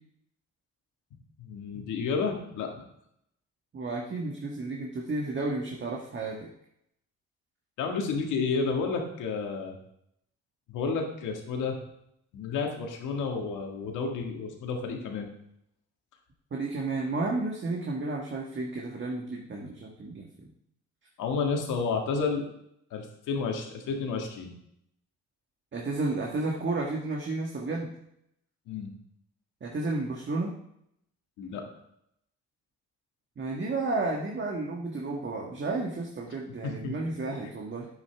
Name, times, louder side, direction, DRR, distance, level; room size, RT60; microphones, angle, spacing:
voice 1, 1.4-2.7 7.8-9.8 10.7-11.8 12.3-15.3 21.2-22.5 22.9-24.5 28.7-28.9 31.4-31.6 36.6-37.0, left 5 dB, 90° left, 2 dB, 1.8 m, -31 dB
voice 2, 3.7-6.5 16.5-20.5 25.7-27.9 29.6-30.5 33.4-37.9, right 3 dB, 40° right, -1 dB, 1.5 m, -32 dB
9.7 x 8.3 x 3.5 m, 0.75 s
cardioid pair, 90°, 30 cm